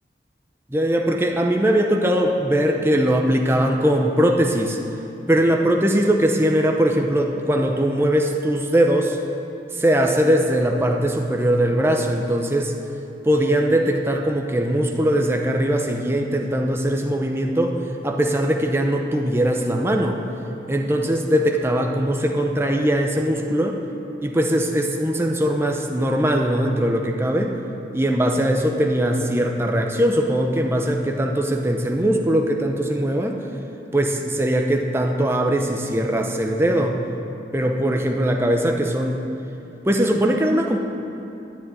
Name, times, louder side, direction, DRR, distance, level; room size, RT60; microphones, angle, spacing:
voice 1, 0.7-4.8 5.3-9.2 9.7-12.7 13.2-17.8 18.0-20.2 20.7-23.8 24.2-27.5 27.9-33.4 33.9-37.0 37.5-39.2 39.9-40.8, right 1 dB, 15° right, 2 dB, 0.7 m, -20 dB
10.0 x 7.4 x 9.5 m, 2.8 s
head